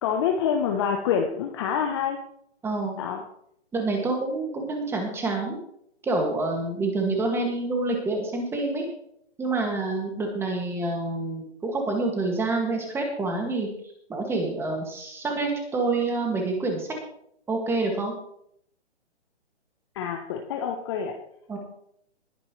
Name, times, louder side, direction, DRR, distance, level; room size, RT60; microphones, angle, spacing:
voice 1, 0.0-2.2 3.0-3.2 19.9-21.2, left 7 dB, 25° left, 3 dB, 0.9 m, -26 dB
voice 2, 2.6-3.0 3.7-5.6 6.0-8.8 9.4-13.7 14.1-16.9 17.5-18.1 21.5-21.6, right 3 dB, 5° right, 2 dB, 2.1 m, -27 dB
20.0 x 10.0 x 3.2 m, 0.72 s
hypercardioid pair, 150°, 35 cm